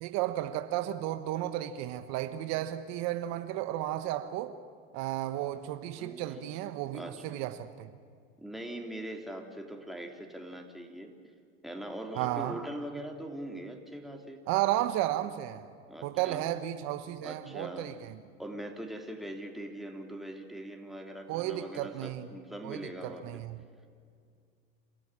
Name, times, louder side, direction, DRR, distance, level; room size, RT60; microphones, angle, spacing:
voice 1, 0.0-4.5 4.9-7.9 12.2-12.5 14.5-15.7 16.0-18.1 21.3-22.3 22.6-22.8 23.0-23.6, right 13 dB, 65° right, 1.3 m, -33 dB
voice 2, 6.0-6.5 6.9-7.4 8.4-11.1 11.6-14.4 15.9-16.5 17.2-18.0 18.4-23.4, right 1 dB, ahead, 3.5 m, -42 dB
28.5 x 13.5 x 9.9 m
supercardioid pair, 100°, 29 cm